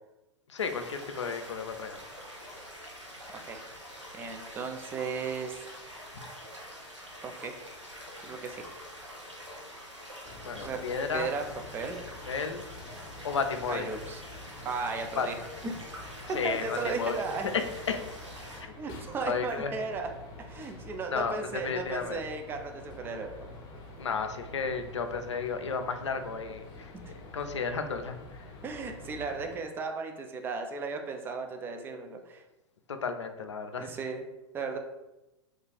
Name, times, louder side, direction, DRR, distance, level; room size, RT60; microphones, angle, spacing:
voice 1, 0.5-2.0 6.1-6.2 10.4-11.3 12.3-12.6 13.2-13.9 15.2-15.3 16.3-17.2 17.5-17.6 17.9-18.0 18.6-18.7 19.3-19.7 21.1-22.2 24.0-26.9 27.3-28.4 32.9-33.9, left 5 dB, 75° left, 7 dB, 0.4 m, -33 dB
sound 1, 0.6-18.6, equal, 85° right, 0.8 m, -46 dB
voice 2, 4.1-5.6 7.2-7.5 8.2-8.6 10.6-10.8 11.1-11.4 11.7-12.0 13.7-14.2 14.6-15.3 15.6-15.7 16.3-17.5 18.8-20.1 20.4-23.3 26.9-27.1 28.6-32.4 33.8-34.2 34.5-34.8, right 4 dB, 15° right, 5 dB, 0.3 m, -35 dB
sound 2, 10.2-29.6, left 2 dB, 30° left, 0.7 m, -47 dB
2.5 x 2.3 x 3.9 m, 0.97 s
figure-of-eight pair, 95°, 15 cm